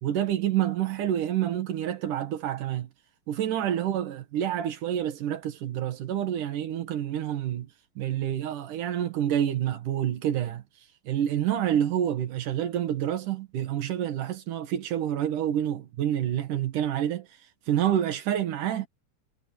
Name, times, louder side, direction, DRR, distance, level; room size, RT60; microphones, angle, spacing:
voice 1, 0.0-2.9 3.3-10.6 11.0-18.9, right 10 dB, 90° right, 3.3 m, -28 dB
omnidirectional pair, 3.5 m